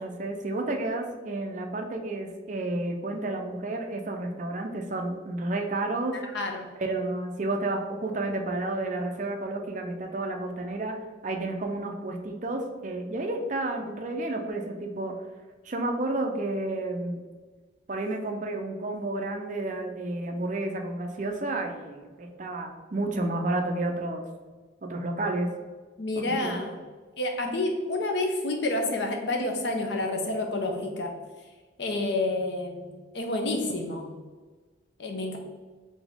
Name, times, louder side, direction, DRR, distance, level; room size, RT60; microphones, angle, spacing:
voice 1, 0.0-6.2 6.8-11.0 11.2-15.1 15.6-17.2 17.9-24.2 24.9-25.5 26.2-26.6, right 2 dB, 40° right, 3 dB, 0.5 m, -31 dB
voice 2, 6.3-6.7 26.0-26.8 27.2-31.1 31.8-34.1 35.0-35.4, left 2 dB, 70° left, 3 dB, 0.7 m, -29 dB
4.1 x 3.4 x 3.6 m, 1.4 s
head